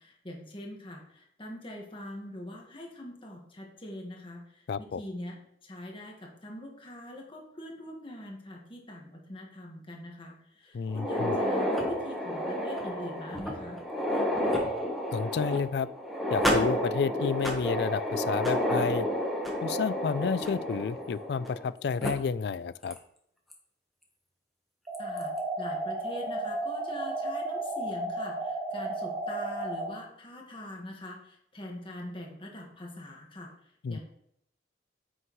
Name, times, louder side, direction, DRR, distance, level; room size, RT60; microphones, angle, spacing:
voice 1, 0.0-13.8 25.0-33.5 33.9-34.0, left 1 dB, 30° left, 0 dB, 1.5 m, -43 dB
voice 2, 4.7-5.0 10.7-11.4 15.1-15.9 16.3-19.1 19.6-23.0 33.8-34.0, left 5 dB, 65° left, 18 dB, 0.3 m, -30 dB
sound 1, 10.9-21.7 22.0-22.1 22.9-23.0 23.5-23.6 24.9-25.2, equal, ahead, 1.3 m, -30 dB
sound 2, 24.9-29.9, right 2 dB, 25° right, 1.5 m, -33 dB
9.2 x 6.2 x 3.1 m, 0.73 s
head